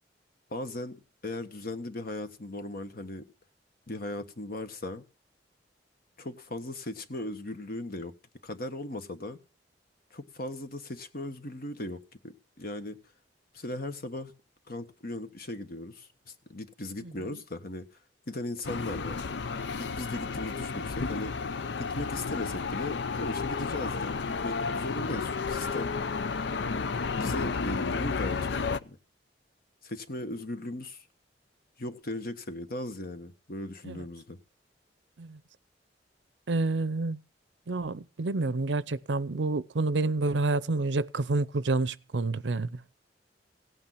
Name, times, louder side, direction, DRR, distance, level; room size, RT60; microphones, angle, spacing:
voice 1, 0.5-3.3 3.9-5.0 6.2-8.1 8.4-9.4 10.1-13.0 13.5-14.3 14.7-17.9 18.3-19.3 19.8-21.3 21.8-26.1 26.7-26.9 27.2-29.0 29.8-31.1 31.8-34.4, left 1 dB, 55° left, 1.4 m, -38 dB
sound 1, 18.6-28.8, left 4 dB, 75° left, 0.6 m, -32 dB
voice 2, 36.5-37.2 37.7-42.7, right 3 dB, 85° right, 0.6 m, -28 dB
16.5 x 8.9 x 5.8 m
head